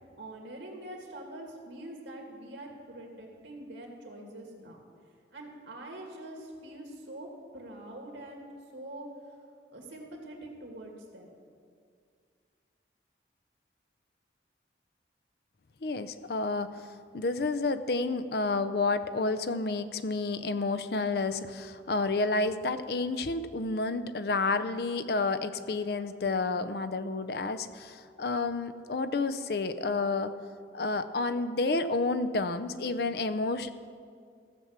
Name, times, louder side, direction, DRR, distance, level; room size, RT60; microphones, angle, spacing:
voice 1, 0.2-4.8 5.3-7.3 7.5-9.4 9.7-11.3, right 1 dB, 90° right, 1 dB, 2.3 m, -44 dB
voice 2, 15.8-16.7 17.1-30.3 30.7-33.7, left 3 dB, 55° left, 12 dB, 0.5 m, -30 dB
15.5 x 6.0 x 7.3 m, 2.2 s
head